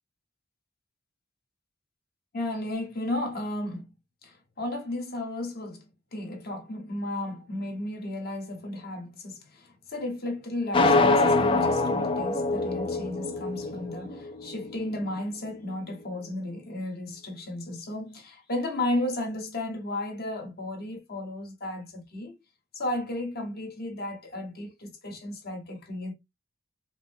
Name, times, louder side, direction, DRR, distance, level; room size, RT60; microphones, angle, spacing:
voice 1, 2.3-3.9 4.2-22.4 22.7-26.1, left 1 dB, 45° left, 1.3 m, -34 dB
sound 1, 10.7-14.7, left 3 dB, 25° left, 0.5 m, -24 dB
5.0 x 2.1 x 3.4 m
head